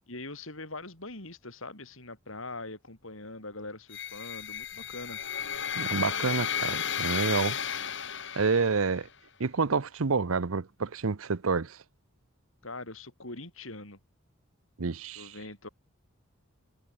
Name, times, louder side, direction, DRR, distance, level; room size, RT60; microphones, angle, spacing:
voice 1, 0.1-5.2 12.6-14.0 15.2-15.7, left 2 dB, 75° left, 7.6 m, -42 dB
sound 1, 3.9-9.0, left 8 dB, 60° left, 5.4 m, -33 dB
voice 2, 5.7-7.6 8.4-9.1 9.4-11.8 14.8-15.3, right 4 dB, 85° right, 0.8 m, -28 dB
head